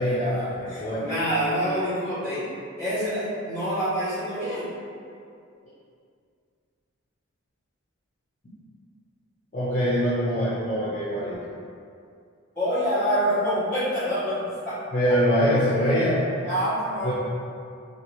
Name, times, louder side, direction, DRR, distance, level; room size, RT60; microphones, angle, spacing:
voice 1, 0.0-1.0 9.5-11.4 14.9-16.2 17.0-17.1, equal, 35° left, -11 dB, 0.5 m, -23 dB
voice 2, 0.7-2.4 2.8-4.7 12.5-14.8 16.4-17.1, equal, 10° left, -14 dB, 1.4 m, -26 dB
2.8 x 2.4 x 2.9 m, 2.3 s
head